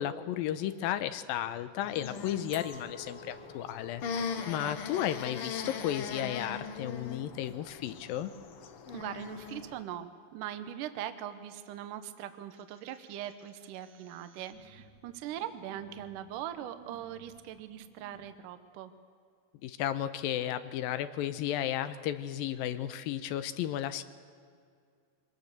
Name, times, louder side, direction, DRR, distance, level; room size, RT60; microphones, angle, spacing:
voice 1, 0.0-8.3 19.6-24.0, left 11 dB, 90° left, 12 dB, 2.5 m, -34 dB
sound 1, 1.8-9.8, left 5 dB, 75° left, 1.3 m, -40 dB
Glass, 2.5-5.3, equal, 20° right, 1.3 m, -51 dB
voice 2, 4.4-4.8 8.9-18.9, right 11 dB, 75° right, 10 dB, 2.3 m, -41 dB
sound 2, 12.5-18.3, right 2 dB, 50° right, 1.4 m, -58 dB
24.0 x 19.0 x 6.6 m, 2.2 s
omnidirectional pair, 4.1 m